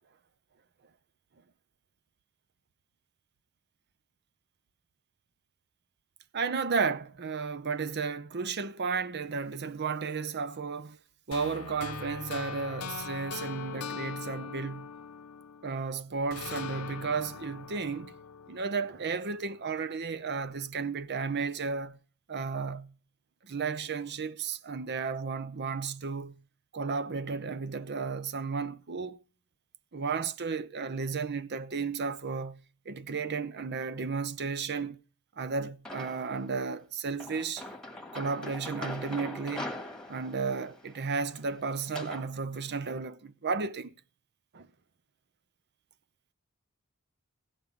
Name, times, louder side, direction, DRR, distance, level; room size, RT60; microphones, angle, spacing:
voice 1, 6.3-11.0 11.3-14.9 15.6-18.1 18.5-22.0 22.3-22.9 23.4-26.4 26.7-29.2 29.9-32.6 32.9-35.0 35.4-37.6 38.1-39.7 40.1-43.9 44.5-44.7, right 5 dB, 50° right, 0.7 m, -33 dB
sound 1, 11.3-15.8 16.3-19.4, left 6 dB, 80° left, 0.8 m, -41 dB
sound 2, 35.9-36.5 37.2-42.3, left 1 dB, 5° left, 1.7 m, -42 dB
16.5 x 5.4 x 9.7 m
head